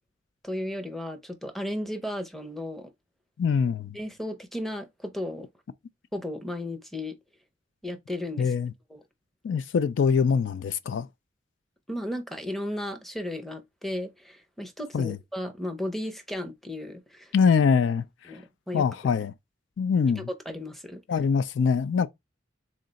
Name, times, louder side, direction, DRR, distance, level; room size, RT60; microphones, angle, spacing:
voice 1, 0.4-2.9 3.9-5.5 6.1-7.1 7.8-8.5 8.9-9.0 11.9-17.3 18.3-18.8 20.2-21.0, left 1 dB, ahead, 0.6 m, -34 dB
voice 2, 3.4-4.0 8.4-8.7 9.4-11.1 14.9-15.2 17.3-18.0 18.7-19.3 19.8-20.3 21.1-22.1, left 6 dB, 65° left, 0.3 m, -23 dB
3.8 x 3.2 x 3.9 m
head